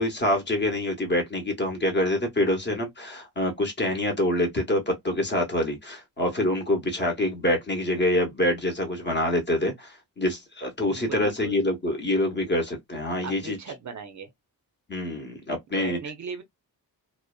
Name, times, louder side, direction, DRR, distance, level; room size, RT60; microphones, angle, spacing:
voice 1, 0.0-13.6 14.9-16.0, left 1 dB, 30° left, 0.8 m, -26 dB
voice 2, 10.8-11.6 13.2-14.3 15.7-16.4, right 5 dB, 50° right, 0.5 m, -38 dB
2.5 x 2.1 x 2.3 m
wide cardioid pair, 170°, 39 cm